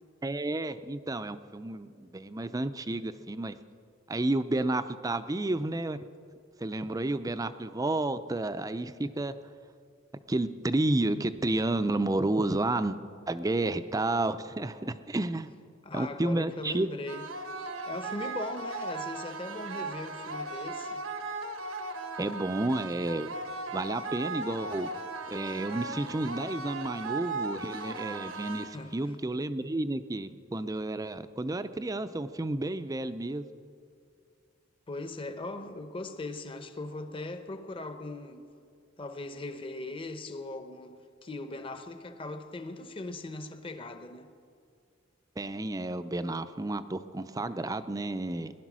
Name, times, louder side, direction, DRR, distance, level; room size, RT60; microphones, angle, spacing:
voice 1, 0.2-3.6 4.1-6.0 6.6-9.3 10.3-13.0 13.3-15.5 15.9-16.9 22.2-23.3 23.7-24.9 25.3-33.4 45.4-48.5, right 2 dB, 15° right, 0.5 m, -31 dB
voice 2, 15.8-17.3 17.9-21.0 28.7-28.9 34.9-38.5 39.0-44.3, left 2 dB, 25° left, 0.9 m, -39 dB
sound 1, 17.1-29.1, right 3 dB, 85° right, 1.1 m, -37 dB
19.0 x 11.0 x 6.2 m
head